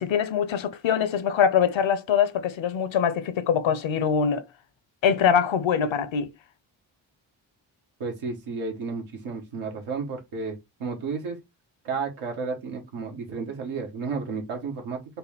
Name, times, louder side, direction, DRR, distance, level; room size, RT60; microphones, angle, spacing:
voice 1, 0.0-4.4 5.0-6.3, left 7 dB, 65° left, 0.8 m, -23 dB
voice 2, 8.0-11.4 11.8-15.0, right 4 dB, 85° right, 1.3 m, -32 dB
4.2 x 2.2 x 3.5 m
supercardioid pair, 45°, 49 cm